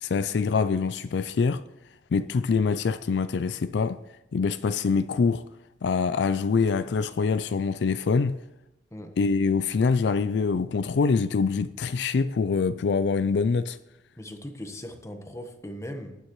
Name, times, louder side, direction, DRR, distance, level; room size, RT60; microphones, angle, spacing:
voice 1, 0.0-1.6 2.1-4.0 4.3-5.5 5.8-8.4 9.2-13.8, left 5 dB, 70° left, 0.4 m, -24 dB
voice 2, 14.2-16.2, equal, 15° left, 1.1 m, -39 dB
18.5 x 9.2 x 3.1 m
head